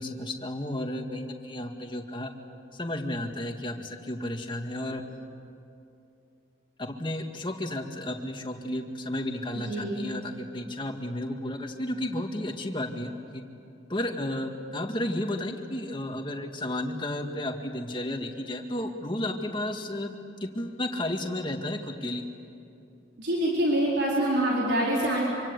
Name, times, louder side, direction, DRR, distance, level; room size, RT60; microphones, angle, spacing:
voice 1, 0.0-2.3 2.7-5.0 6.8-13.4 13.9-22.2, left 1 dB, 25° left, 4 dB, 2.0 m, -33 dB
voice 2, 9.5-10.1 23.2-25.2, right 1 dB, 80° right, -4 dB, 4.6 m, -25 dB
26.5 x 25.5 x 8.3 m, 2.6 s
head